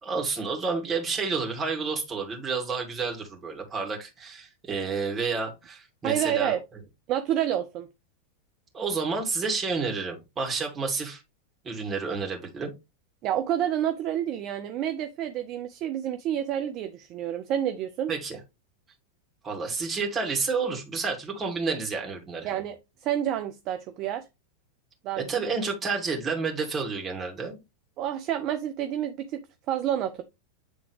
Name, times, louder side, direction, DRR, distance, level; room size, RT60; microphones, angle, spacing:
voice 1, 0.0-6.6 8.7-11.2 11.6-12.7 18.1-18.4 19.4-22.5 25.2-27.6, right 4 dB, 20° right, 2.3 m, -30 dB
voice 2, 6.0-6.6 7.1-7.9 13.2-18.1 22.4-24.2 25.0-25.3 28.0-30.2, right 10 dB, 35° right, 0.6 m, -29 dB
8.5 x 3.5 x 3.2 m
figure-of-eight pair, 90°, 0 cm